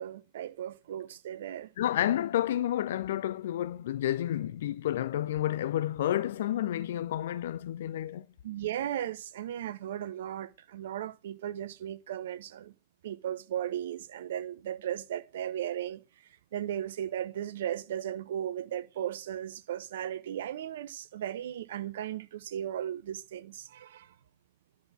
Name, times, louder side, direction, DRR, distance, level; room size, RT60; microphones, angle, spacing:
voice 1, 0.0-1.7 8.4-12.7 13.0-16.0 16.5-24.1, right 10 dB, 60° right, 0.5 m, -36 dB
voice 2, 1.8-8.3, left 12 dB, 60° left, 0.4 m, -30 dB
10.5 x 4.2 x 7.1 m
figure-of-eight pair, 90°, 0 cm